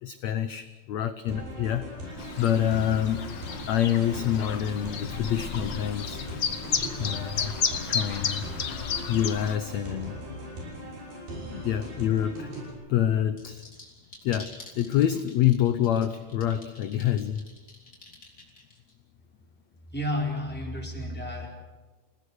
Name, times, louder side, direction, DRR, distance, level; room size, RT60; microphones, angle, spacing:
voice 1, 0.0-3.3 3.7-6.2 7.0-8.5 9.1-10.2 11.5-12.5 12.9-13.6 14.2-17.5, left 10 dB, 90° left, 11 dB, 1.5 m, -27 dB
sound 1, 1.3-12.7, equal, 75° right, 8.0 m, -39 dB
Chirp tweet, 2.2-9.6, left 6 dB, 65° left, 1.1 m, -32 dB
sound 2, 13.4-18.9, left 2 dB, 20° left, 4.6 m, -47 dB
voice 2, 19.9-21.5, left 1 dB, 5° left, -2 dB, 4.5 m, -31 dB
29.0 x 18.0 x 6.5 m, 1.3 s
omnidirectional pair, 4.2 m